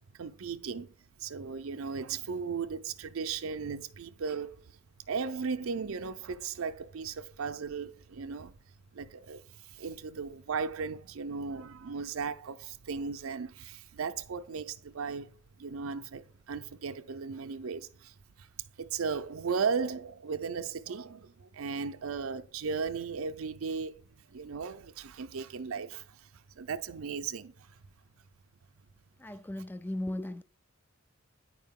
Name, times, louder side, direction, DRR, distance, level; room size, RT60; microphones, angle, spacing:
voice 1, 0.1-4.8 5.1-8.5 8.9-18.5 18.8-27.8, right 5 dB, 80° right, 0.5 m, -36 dB
voice 2, 29.2-30.4, left 1 dB, 10° left, 0.3 m, -36 dB
9.6 x 4.9 x 3.6 m
head